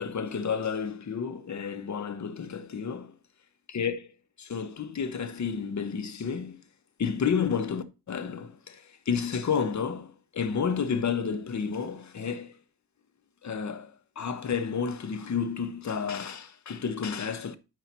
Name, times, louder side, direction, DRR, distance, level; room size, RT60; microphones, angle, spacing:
voice 1, 0.0-3.1 3.7-4.1 4.4-6.6 7.0-12.6 13.4-17.6, left 6 dB, 40° left, 0.8 m, -31 dB
9.0 x 4.8 x 2.9 m
cardioid pair, 90°, 44 cm